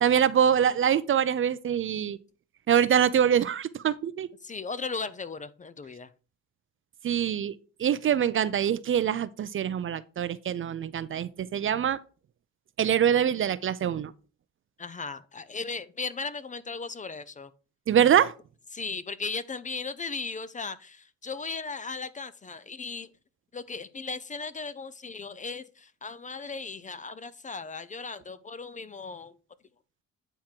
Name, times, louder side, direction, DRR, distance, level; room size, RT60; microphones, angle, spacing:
voice 1, 0.0-2.2 2.7-4.3 7.0-12.0 12.8-14.1 17.9-18.3, right 9 dB, 45° right, 0.5 m, -24 dB
voice 2, 4.4-6.1 14.8-17.5 18.7-23.1 23.5-29.4, left 4 dB, 25° left, 0.5 m, -37 dB
9.0 x 3.6 x 4.4 m
cardioid pair, 90°, 30 cm